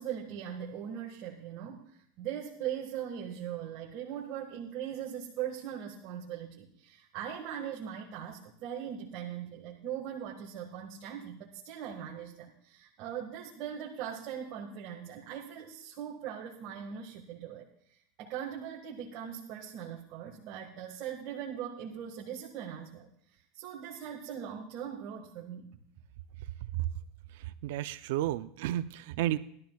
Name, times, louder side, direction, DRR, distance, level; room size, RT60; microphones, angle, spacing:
voice 1, 0.0-1.9 2.2-23.1 23.6-25.7, right 9 dB, 50° right, -2 dB, 1.7 m, -40 dB
voice 2, 27.6-29.4, right 13 dB, 70° right, 12 dB, 0.5 m, -32 dB
21.0 x 13.0 x 2.3 m, 0.66 s
supercardioid pair, 135°, 0 cm